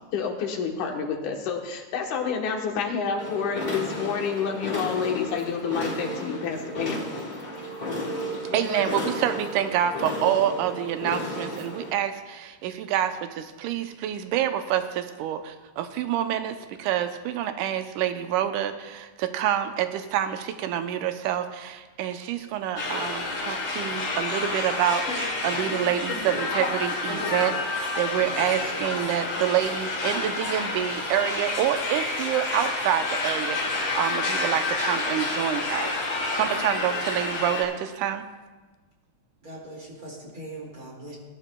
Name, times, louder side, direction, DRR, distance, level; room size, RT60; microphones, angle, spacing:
voice 1, 0.1-7.0, left 6 dB, 80° left, 2 dB, 2.6 m, -29 dB
sound 1, 3.2-11.9, left 1 dB, 45° left, 0.5 m, -33 dB
voice 2, 8.5-38.3, right 10 dB, 90° right, 8 dB, 2.2 m, -27 dB
sound 2, 22.8-37.6, left 3 dB, 60° left, 3.8 m, -29 dB
voice 3, 39.4-41.2, right 1 dB, 30° right, -2 dB, 2.3 m, -40 dB
19.0 x 11.0 x 2.2 m, 1.3 s
omnidirectional pair, 3.5 m